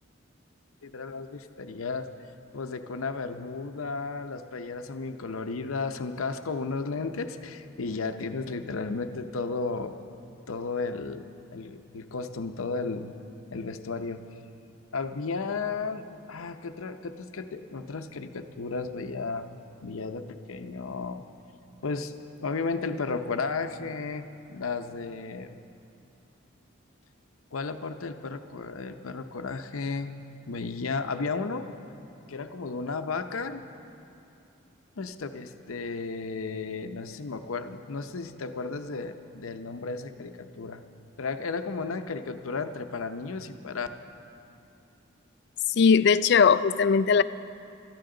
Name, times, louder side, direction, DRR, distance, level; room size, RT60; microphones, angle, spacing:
voice 1, 0.8-2.1 2.5-10.0 10.5-13.1 13.5-14.3 14.9-19.6 19.8-21.2 21.8-25.6 27.5-30.1 30.5-31.7 32.3-33.6 35.0-40.8 41.2-43.9, left 4 dB, 85° left, 8 dB, 0.7 m, -34 dB
voice 2, 45.7-47.2, left 6 dB, 55° left, 15 dB, 0.3 m, -19 dB
19.5 x 13.0 x 3.8 m, 2.7 s
head